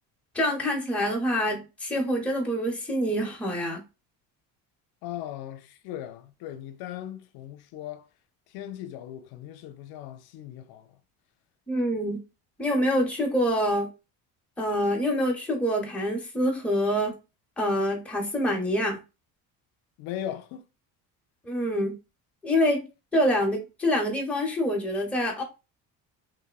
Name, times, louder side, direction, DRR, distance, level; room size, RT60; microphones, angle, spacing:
voice 1, 0.3-3.8 11.7-12.2 12.6-13.9 14.6-17.2 17.6-19.0 21.5-22.0 22.4-22.9 23.1-25.4, equal, 5° left, 0.7 m, -26 dB
voice 2, 5.0-8.1 8.5-11.0 20.0-20.6, left 11 dB, 75° left, 0.5 m, -38 dB
3.1 x 2.1 x 2.3 m
cardioid pair, 135°, 38 cm